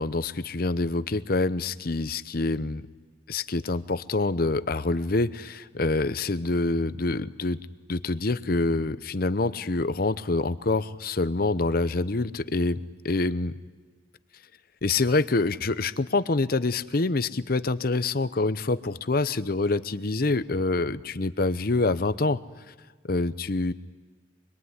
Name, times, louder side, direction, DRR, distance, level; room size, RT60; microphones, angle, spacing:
voice 1, 0.0-2.8 3.3-7.6 7.9-12.8 13.0-13.5 14.8-22.4 23.1-23.7, left 3 dB, 50° left, 14 dB, 0.8 m, -26 dB
25.0 x 22.0 x 9.7 m, 1.4 s
head